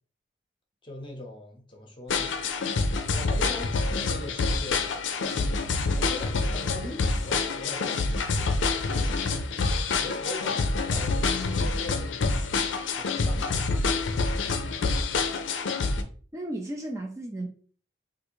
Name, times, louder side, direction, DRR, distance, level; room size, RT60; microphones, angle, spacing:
voice 1, 0.8-2.3 3.1-5.0 5.9-9.3 10.0-12.2 12.9-14.3, left 2 dB, 25° left, 2 dB, 0.7 m, -41 dB
sound 1, 2.1-16.0, left 3 dB, 85° left, 0.5 m, -27 dB
voice 2, 16.3-17.5, right 1 dB, 15° right, 1 dB, 0.3 m, -34 dB
3.5 x 2.4 x 3.0 m, 0.44 s
head